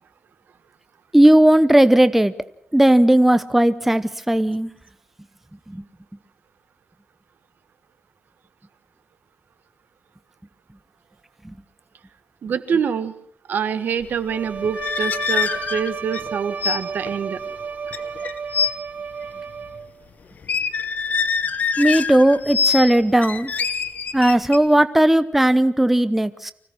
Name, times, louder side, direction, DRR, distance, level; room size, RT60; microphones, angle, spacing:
voice 1, 1.1-2.3 2.7-4.7 5.7-5.8 11.4-11.5 21.8-23.5 24.1-26.5, right 1 dB, 5° right, 13 dB, 0.8 m, -16 dB
voice 2, 12.4-13.1 13.5-17.4, right 7 dB, 70° right, 11 dB, 1.5 m, -25 dB
Bowed string instrument, 14.2-20.1, right 6 dB, 50° right, 0.8 m, -33 dB
sound 1, 14.6-16.3 16.6-16.8 17.1-17.3 17.9-18.7 20.4-22.9 23.2-24.6, left 5 dB, 55° left, 1.2 m, -24 dB
25.0 x 17.0 x 6.2 m, 0.65 s
wide cardioid pair, 115°, 3 cm